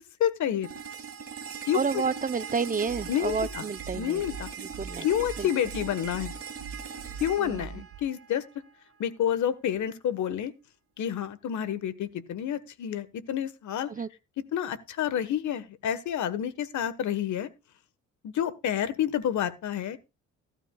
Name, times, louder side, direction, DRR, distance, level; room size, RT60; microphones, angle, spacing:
voice 1, 0.2-0.7 1.6-2.0 3.1-3.6 3.9-4.5 5.0-6.3 7.2-8.4 9.0-10.5 11.0-13.9 14.5-17.5 18.3-20.0, left 10 dB, 75° left, 1.4 m, -29 dB
sound 1, 0.6-8.6, right 7 dB, 50° right, 3.0 m, -40 dB
voice 2, 1.7-4.2 4.6-5.1 5.4-5.5 7.4-7.9 13.9-14.1, right 5 dB, 30° right, 0.6 m, -30 dB
sound 2, 2.9-8.0, right 6 dB, 75° right, 1.6 m, -42 dB
17.0 x 12.5 x 2.3 m
cardioid pair, 90°, 30 cm